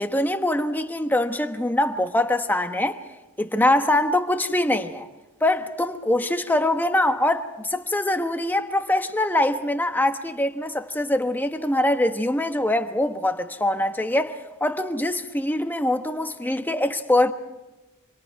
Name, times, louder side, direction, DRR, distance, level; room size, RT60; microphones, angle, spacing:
voice 1, 0.0-3.0 3.4-5.1 5.4-17.3, left 1 dB, 10° left, 1.2 m, -23 dB
28.0 x 26.0 x 4.7 m
head